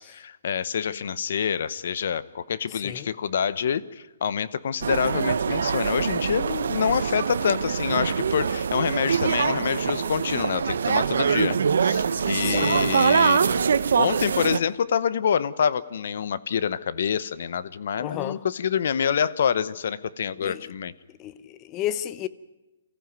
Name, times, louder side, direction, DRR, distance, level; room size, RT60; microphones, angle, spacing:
voice 1, 0.0-13.6 14.0-20.9, left 7 dB, 65° left, 0.8 m, -26 dB
voice 2, 2.7-3.1 12.4-12.8 18.0-18.4 20.4-20.7 21.2-22.3, left 12 dB, 25° left, 0.7 m, -32 dB
sound 1, 4.8-14.6, right 6 dB, 75° right, 0.9 m, -24 dB
24.0 x 14.5 x 9.3 m
hypercardioid pair, 155°, 0 cm